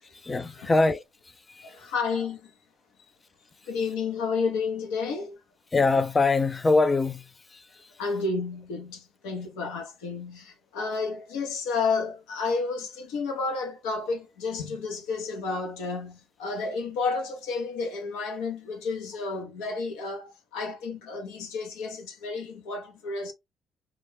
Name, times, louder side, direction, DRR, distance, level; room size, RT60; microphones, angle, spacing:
voice 1, 0.2-1.8 5.7-7.9, left 3 dB, 25° left, 0.3 m, -24 dB
voice 2, 1.6-2.5 3.7-5.4 8.0-23.3, left 4 dB, 80° left, 0.7 m, -31 dB
2.3 x 2.2 x 3.2 m
hypercardioid pair, 60°, 0 cm